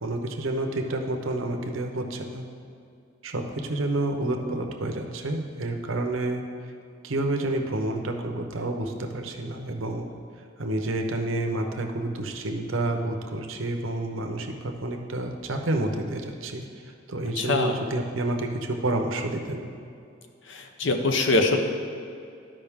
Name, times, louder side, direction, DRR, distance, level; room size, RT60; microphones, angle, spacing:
voice 1, 0.0-2.4 3.2-6.4 7.0-10.1 10.6-16.6 17.1-19.7, right 2 dB, 80° right, 4 dB, 0.8 m, -29 dB
voice 2, 17.4-17.8 20.5-21.6, left 2 dB, 65° left, 4 dB, 0.8 m, -23 dB
12.0 x 5.3 x 3.6 m, 2.4 s
head